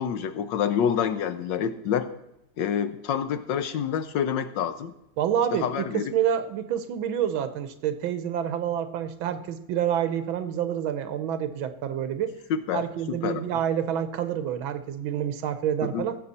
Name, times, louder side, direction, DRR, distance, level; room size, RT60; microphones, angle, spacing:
voice 1, 0.0-2.1 2.6-4.9 5.5-6.1 12.5-13.4 15.8-16.1, left 8 dB, 75° left, 11 dB, 1.3 m, -27 dB
voice 2, 5.2-12.3 12.7-16.2, right 9 dB, 80° right, 11 dB, 1.6 m, -28 dB
17.0 x 7.5 x 4.2 m, 0.88 s
omnidirectional pair, 2.2 m